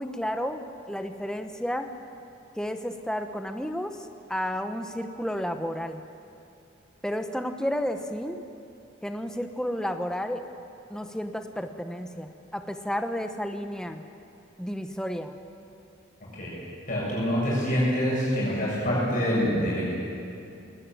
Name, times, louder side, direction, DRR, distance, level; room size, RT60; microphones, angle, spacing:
voice 1, 0.0-1.9 2.6-6.0 7.0-8.4 9.0-10.4 10.9-14.0 14.6-15.4, equal, 5° left, 6 dB, 0.9 m, -32 dB
voice 2, 16.9-19.8, equal, 45° left, -6 dB, 7.6 m, -25 dB
20.0 x 19.5 x 9.1 m, 2.7 s
head